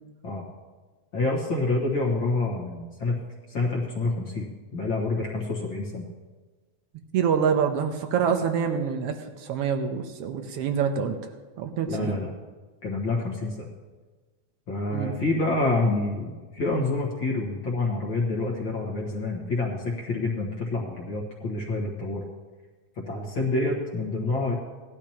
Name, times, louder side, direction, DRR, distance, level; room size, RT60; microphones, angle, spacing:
voice 1, 1.1-3.2 3.5-6.1 11.9-12.3 12.8-13.7 14.7-22.2 23.1-24.5, left 2 dB, 45° left, -2 dB, 2.0 m, -27 dB
voice 2, 7.1-11.2 11.6-12.2 14.9-15.1, right 7 dB, 70° right, 6 dB, 1.5 m, -26 dB
18.0 x 12.0 x 2.9 m, 1.3 s
omnidirectional pair, 3.5 m